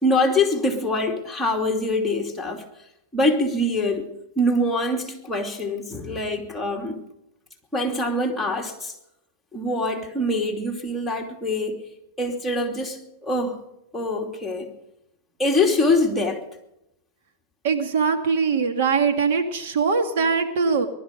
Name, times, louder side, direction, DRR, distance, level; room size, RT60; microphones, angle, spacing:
voice 1, 0.0-2.6 3.1-4.1 4.4-7.0 7.7-8.9 9.5-11.8 12.2-13.6 13.9-14.7 15.4-16.4, left 1 dB, 5° left, 0 dB, 2.8 m, -24 dB
voice 2, 17.6-20.9, right 5 dB, 65° right, 5 dB, 2.3 m, -22 dB
21.0 x 12.5 x 5.3 m, 0.85 s
hypercardioid pair, 140°, 0 cm